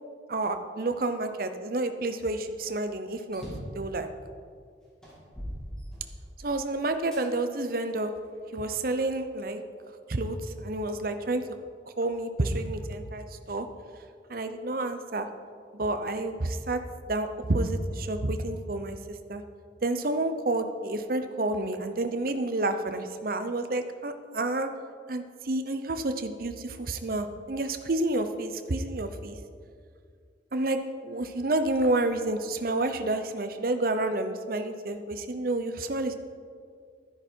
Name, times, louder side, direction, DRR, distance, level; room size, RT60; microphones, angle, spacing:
voice 1, 0.3-3.4 3.7-4.1 6.4-8.1 8.5-9.6 10.1-11.4 12.0-13.7 14.3-15.3 15.7-16.8 17.1-19.0 19.3-19.4 19.8-24.7 25.1-29.4 30.5-36.1, right 2 dB, 50° right, 8 dB, 0.8 m, -29 dB
sound 1, 3.3-3.8 4.5-4.6 5.0-6.4 7.1-7.2 8.0-9.0, equal, 5° left, 3.2 m, -41 dB
12.5 x 10.5 x 4.5 m, 2.2 s
head